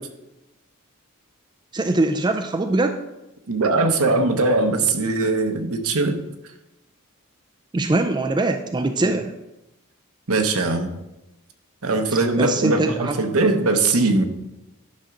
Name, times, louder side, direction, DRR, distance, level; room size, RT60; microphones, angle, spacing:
voice 1, 1.7-3.0 7.7-9.3 12.4-13.2, right 2 dB, 20° right, 6 dB, 0.4 m, -22 dB
voice 2, 3.5-6.2 9.0-9.1 10.3-10.9 11.8-14.3, right 3 dB, 70° right, 6 dB, 1.0 m, -20 dB
11.0 x 3.8 x 5.9 m, 0.96 s
head